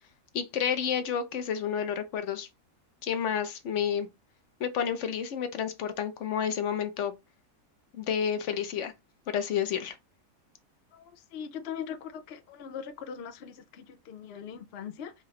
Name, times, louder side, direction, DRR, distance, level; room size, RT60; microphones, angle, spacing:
voice 1, 0.3-2.5 3.0-4.1 4.6-7.1 7.9-8.9 9.3-9.9, left 8 dB, 60° left, 0.9 m, -30 dB
voice 2, 10.9-15.1, left 8 dB, 75° left, 0.5 m, -41 dB
4.7 x 2.9 x 3.1 m
omnidirectional pair, 1.7 m